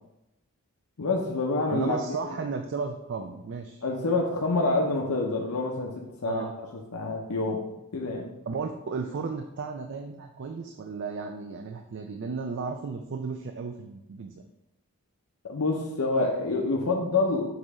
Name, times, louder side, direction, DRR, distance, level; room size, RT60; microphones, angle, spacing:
voice 1, 1.0-2.0 2.2-2.4 3.8-5.9 6.2-6.4 6.9-7.6 7.9-8.3 15.4-17.4, left 3 dB, 80° left, 0 dB, 0.7 m, -27 dB
voice 2, 1.7-3.8 6.2-6.5 8.5-14.4, right 4 dB, 55° right, 5 dB, 0.4 m, -34 dB
6.5 x 3.0 x 4.8 m, 0.89 s
head